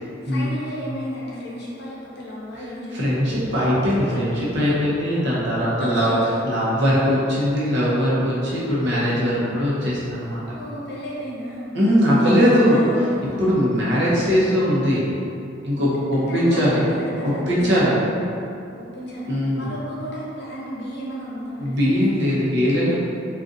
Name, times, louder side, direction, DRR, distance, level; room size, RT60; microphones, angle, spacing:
voice 1, 0.2-3.2 5.8-6.4 10.6-11.7 12.1-13.4 15.8-17.6 18.7-21.8, equal, 60° left, -6 dB, 0.7 m, -33 dB
voice 2, 2.9-6.1 6.4-10.4 11.7-12.8 13.4-15.0 15.6-16.8 17.2-18.0 19.3-19.7 21.6-23.0, equal, 65° right, -8 dB, 0.9 m, -20 dB
3.7 x 2.4 x 2.6 m, 2.6 s
head